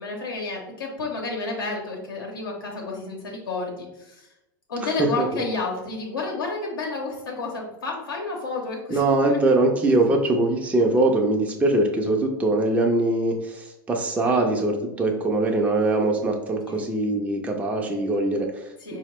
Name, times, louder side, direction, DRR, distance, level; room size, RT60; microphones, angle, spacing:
voice 1, 0.0-4.3 4.7-9.4 14.2-14.6 16.7-16.9 18.8-19.0, left 3 dB, 85° left, -2 dB, 0.7 m, -31 dB
voice 2, 5.0-5.4 8.9-19.0, right 2 dB, 10° right, 1 dB, 0.5 m, -22 dB
4.3 x 2.0 x 2.9 m, 0.90 s
hypercardioid pair, 95°, 11 cm